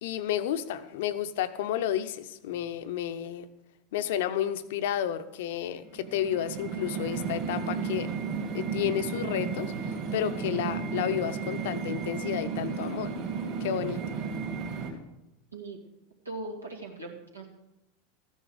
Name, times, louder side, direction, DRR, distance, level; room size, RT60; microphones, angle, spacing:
voice 1, 0.0-3.5 3.9-8.1 8.5-13.1 13.6-14.0, left 10 dB, 60° left, 11 dB, 0.7 m, -31 dB
sound 1, 5.8-14.9, right 5 dB, 45° right, 3.0 m, -33 dB
voice 2, 16.3-17.5, right 2 dB, 90° right, 1 dB, 2.0 m, -39 dB
14.0 x 9.9 x 4.8 m, 0.93 s
figure-of-eight pair, 85°, 0 cm